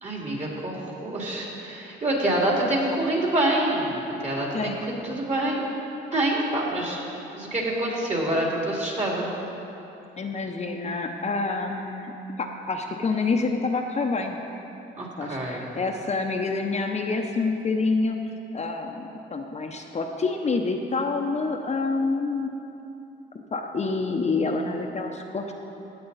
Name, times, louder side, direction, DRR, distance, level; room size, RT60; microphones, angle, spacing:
voice 1, 0.0-4.7 5.0-5.6 6.1-7.0 7.3-9.3 15.0-15.7, right 1 dB, 35° right, -3 dB, 2.8 m, -26 dB
voice 2, 10.2-14.4 15.2-18.2 18.5-22.5 23.5-25.5, left 3 dB, 35° left, 3 dB, 0.8 m, -27 dB
14.5 x 8.6 x 4.1 m, 3.0 s
cardioid pair, 90°, 20 cm